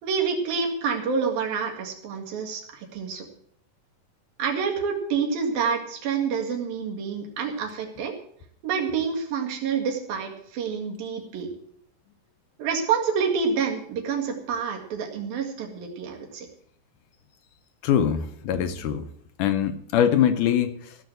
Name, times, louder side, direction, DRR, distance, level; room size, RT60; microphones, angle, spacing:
voice 1, 0.0-3.3 4.4-8.1 8.6-11.5 12.6-16.5, right 6 dB, 80° right, 1 dB, 3.8 m, -28 dB
voice 2, 17.8-19.1 19.4-21.0, left 9 dB, 75° left, 9 dB, 2.1 m, -23 dB
15.5 x 6.2 x 7.9 m, 0.66 s
omnidirectional pair, 4.1 m